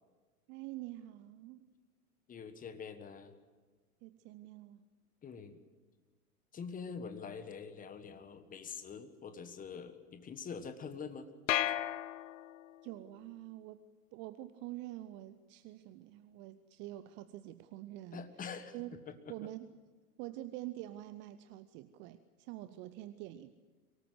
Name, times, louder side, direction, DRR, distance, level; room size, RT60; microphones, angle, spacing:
voice 1, 0.5-1.7 4.0-4.8 12.8-13.8 14.1-18.3 18.7-18.9 19.3-19.7 20.2-23.5, right 15 dB, 25° right, 13 dB, 0.6 m, -46 dB
voice 2, 2.3-3.3 5.2-5.6 6.5-11.3 18.1-18.7 19.1-19.2, left 6 dB, 15° left, 10 dB, 1.5 m, -45 dB
sound 1, 11.5-12.8, left 12 dB, 55° left, 0.7 m, -34 dB
23.5 x 18.5 x 8.0 m, 1.4 s
figure-of-eight pair, 90°, 46 cm